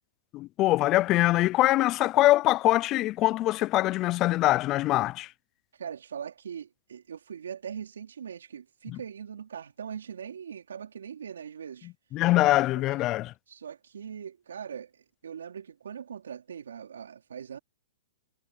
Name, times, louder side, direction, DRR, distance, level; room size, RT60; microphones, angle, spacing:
voice 1, 0.3-5.3 8.9-9.0 12.1-13.3, left 17 dB, 25° left, 0.4 m, -23 dB
voice 2, 5.7-11.9 12.8-12.9 13.5-17.6, right 8 dB, 85° right, 4.3 m, -41 dB
hypercardioid pair, 150°, 0 cm